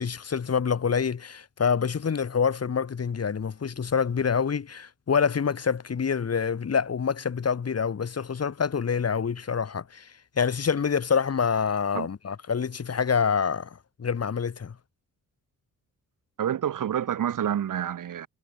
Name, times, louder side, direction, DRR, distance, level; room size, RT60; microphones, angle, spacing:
voice 1, 0.0-14.8, left 6 dB, 50° left, 6.0 m, -26 dB
voice 2, 16.4-18.3, right 10 dB, 75° right, 6.3 m, -28 dB
cardioid pair, 85°, 32 cm